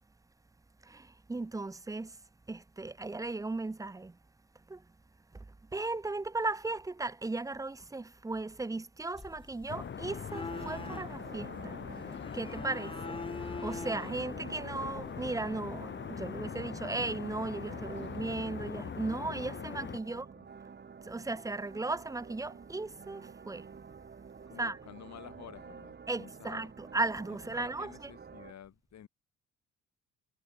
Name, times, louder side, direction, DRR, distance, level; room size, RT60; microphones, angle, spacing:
voice 1, 0.8-2.2 2.5-4.2 4.7-4.8 5.3-5.5 5.7-20.3 21.0-23.7 24.6-24.8 26.1-28.1, right 3 dB, 10° right, 0.6 m, -36 dB
sound 1, 9.1-15.1, left 3 dB, 15° left, 1.4 m, -45 dB
sound 2, 9.7-20.0, left 7 dB, 40° left, 1.0 m, -42 dB
sound 3, 10.5-28.5, right 6 dB, 35° right, 1.9 m, -50 dB
voice 2, 20.0-20.5 24.5-26.7 27.5-29.1, left 10 dB, 65° left, 6.6 m, -51 dB
cardioid pair, 90°, 30 cm